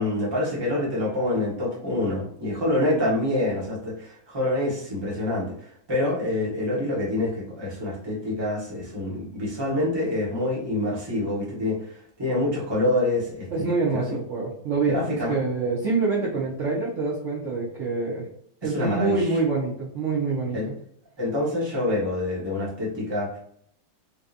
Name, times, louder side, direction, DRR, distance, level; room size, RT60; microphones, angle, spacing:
voice 1, 0.0-14.0 14.9-15.4 18.6-19.3 20.5-20.7 21.2-23.3, left 1 dB, 20° right, -5 dB, 0.8 m, -26 dB
voice 2, 13.5-18.2 18.6-20.7, right 3 dB, 60° right, -4 dB, 0.8 m, -26 dB
3.7 x 2.7 x 2.5 m, 0.67 s
omnidirectional pair, 2.2 m